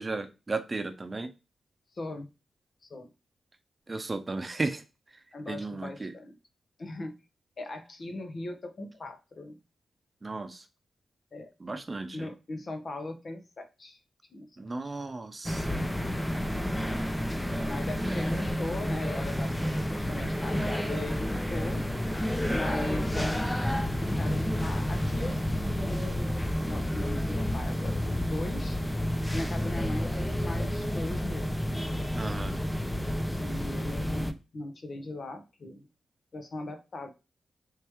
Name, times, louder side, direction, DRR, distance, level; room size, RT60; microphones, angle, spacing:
voice 1, 0.0-1.3 3.9-4.8 5.5-6.1 10.2-10.6 11.6-12.3 14.6-15.9 17.5-17.7 18.0-18.1 32.1-32.6, right 3 dB, 35° right, 8 dB, 0.6 m, -35 dB
voice 2, 1.9-2.3 2.8-3.1 5.3-6.4 6.8-7.1 7.6-9.6 11.3-11.5 12.1-14.0 14.3-14.5 14.8-14.9 17.6-21.9 22.5-25.4 25.9-26.3 26.6-28.8 29.3-31.7 33.3-35.9 36.3-37.1, left 2 dB, 55° left, 6 dB, 0.8 m, -39 dB
sound 1, 15.4-34.3, equal, 10° left, 0.5 m, -30 dB
3.2 x 2.9 x 3.4 m, 0.28 s
cardioid pair, 50°, 0 cm